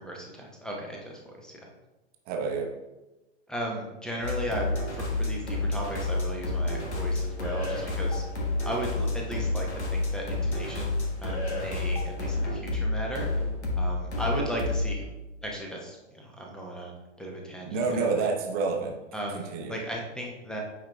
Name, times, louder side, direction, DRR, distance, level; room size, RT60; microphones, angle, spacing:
voice 1, 0.0-1.6 3.5-8.2 8.6-13.3 13.7-15.0 15.4-16.9 17.2-18.3 19.1-20.6, right 1 dB, ahead, -1 dB, 0.8 m, -36 dB
voice 2, 2.3-2.7 17.6-19.0 19.3-19.7, right 4 dB, 25° right, 2 dB, 1.0 m, -28 dB
sound 1, 4.2-15.1, left 2 dB, 75° left, 1.5 m, -30 dB
8.7 x 4.9 x 2.3 m, 1.0 s
figure-of-eight pair, 105°, 34 cm